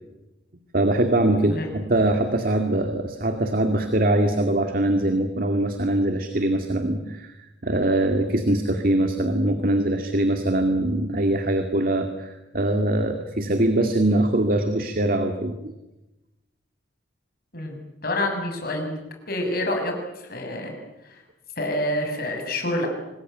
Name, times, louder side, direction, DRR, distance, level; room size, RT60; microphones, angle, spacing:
voice 1, 0.7-7.3 7.6-15.7, right 1 dB, 55° right, 6 dB, 2.1 m, -22 dB
voice 2, 18.0-19.0 19.3-19.9 20.3-20.7 21.0-21.2 21.6-22.9, left 1 dB, 55° left, 3 dB, 6.6 m, -27 dB
26.5 x 20.5 x 9.1 m, 0.99 s
head